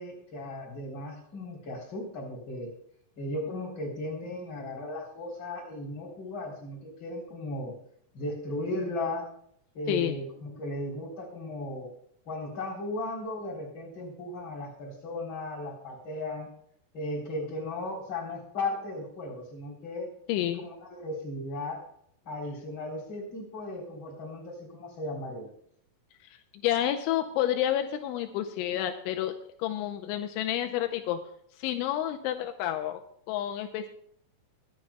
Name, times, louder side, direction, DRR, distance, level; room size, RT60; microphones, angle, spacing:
voice 1, 0.0-2.7 3.2-7.7 8.1-9.3 9.7-11.9 12.2-16.5 16.9-20.1 20.5-21.8 22.2-25.5, left 2 dB, 30° left, -2 dB, 3.6 m, -36 dB
voice 2, 20.3-20.6 26.3-29.3 29.6-31.2 31.6-33.0 33.3-33.9, left 11 dB, 85° left, 6 dB, 3.0 m, -29 dB
23.0 x 9.3 x 2.3 m, 0.69 s
omnidirectional pair, 5.5 m